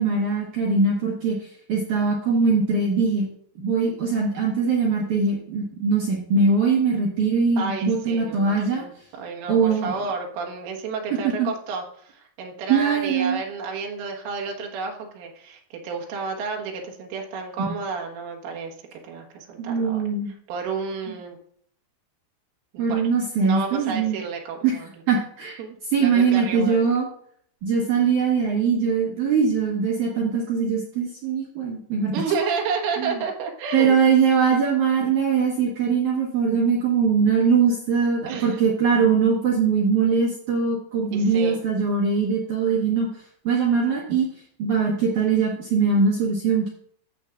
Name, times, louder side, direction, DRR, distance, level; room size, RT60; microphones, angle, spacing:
voice 1, 0.0-3.3 3.6-8.8 9.5-9.9 11.2-11.5 12.7-13.4 17.7-17.8 19.6-20.3 22.8-24.2 24.6-24.7 25.1-25.6 25.9-27.1 27.6-32.1 33.0-33.2 33.7-43.1 43.4-44.3 44.6-46.7, right 5 dB, 65° right, -3 dB, 1.9 m, -21 dB
voice 2, 7.6-8.9 9.2-20.0 20.5-21.4 22.7-23.0 23.4-24.9 25.6-26.8 32.1-34.0 38.3-38.6 41.1-41.6, right 5 dB, 80° right, 0 dB, 4.0 m, -31 dB
14.5 x 7.0 x 2.5 m, 0.62 s
omnidirectional pair, 5.6 m